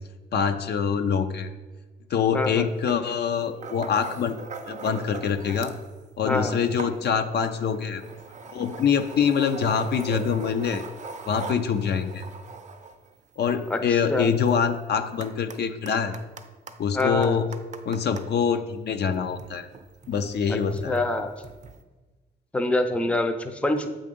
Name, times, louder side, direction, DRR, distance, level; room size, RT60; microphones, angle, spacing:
voice 1, 0.3-1.5 2.1-4.4 4.6-5.7 6.2-8.0 8.5-10.8 11.3-12.3 13.4-16.2 16.8-17.5 17.9-19.7 20.1-21.0, left 6 dB, 55° left, 8 dB, 0.6 m, -25 dB
voice 2, 2.3-2.7 6.2-6.5 13.7-13.8 14.1-14.3 16.9-17.4 20.5-20.6 20.8-21.3 22.5-23.9, left 2 dB, 5° left, 6 dB, 0.5 m, -25 dB
sound 1, 2.4-2.6 2.9-5.9 6.2-18.3 19.0-21.8, right 4 dB, 35° right, 0.6 m, -42 dB
7.7 x 3.9 x 5.2 m, 1.3 s
cardioid pair, 90°, 20 cm